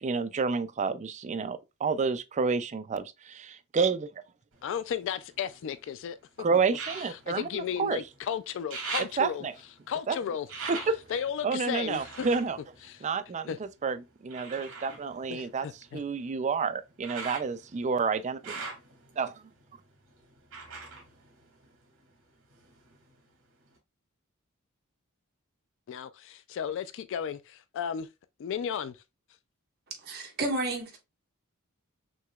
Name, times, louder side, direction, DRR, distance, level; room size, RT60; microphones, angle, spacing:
voice 1, 0.0-4.1 6.4-8.0 9.2-9.5 10.1-10.2 10.7-11.0 11.4-12.6 13.0-15.7 15.9-18.6 19.2-19.3, right 5 dB, 35° right, 0.4 m, -29 dB
sound 1, 4.5-5.9 6.7-8.2 8.5-13.6 14.3-22.1 22.4-23.3 23.8-23.9, right 4 dB, 65° right, 2.0 m, -43 dB
voice 2, 4.6-6.2 7.0-9.5 9.9-10.5 11.1-12.3 12.8-13.1 13.5-13.6 15.3-16.0 25.9-28.1 28.4-29.0, left 8 dB, 60° left, 0.3 m, -34 dB
voice 3, 30.0-31.0, right 2 dB, 50° right, 1.4 m, -31 dB
6.1 x 2.9 x 2.3 m
head